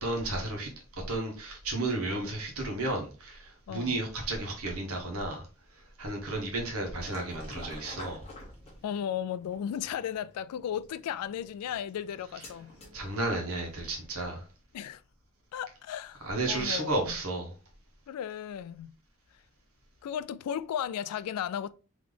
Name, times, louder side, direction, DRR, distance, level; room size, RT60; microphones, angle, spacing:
voice 1, 0.0-5.5 5.7-8.3 12.9-14.4 16.2-17.5, right 2 dB, 70° right, 1.4 m, -33 dB
voice 2, 3.7-4.0 8.8-12.7 14.7-15.0 15.5-17.2 18.1-18.9 20.0-21.7, left 9 dB, 85° left, 0.3 m, -35 dB
sound 1, 7.0-14.0, left 1 dB, 25° left, 1.3 m, -50 dB
3.9 x 3.1 x 3.3 m
head